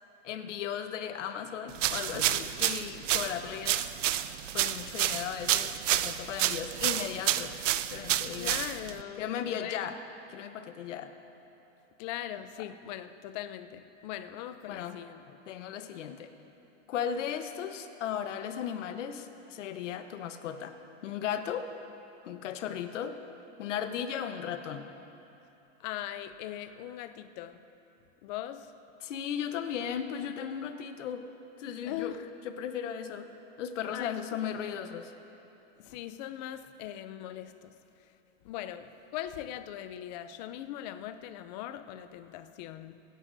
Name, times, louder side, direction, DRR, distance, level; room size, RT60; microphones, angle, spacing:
voice 1, 0.2-3.9 4.5-7.6 7.9-8.6 9.2-10.0 10.3-11.1 14.7-15.0 15.5-16.3 16.9-20.7 21.0-21.7 22.2-23.2 23.6-24.9 29.0-31.3 31.6-32.2 32.4-33.3 33.6-35.1, left 8 dB, 80° left, 1.1 m, -36 dB
sound 1, 1.8-9.0, right 12 dB, 85° right, 0.6 m, -30 dB
voice 2, 8.4-9.9 12.0-15.4 25.8-27.7 28.2-28.7 31.8-32.3 33.9-34.4 35.8-38.1 38.4-43.0, left 12 dB, 35° left, 0.5 m, -40 dB
23.0 x 10.0 x 2.7 m
supercardioid pair, 150°, 36 cm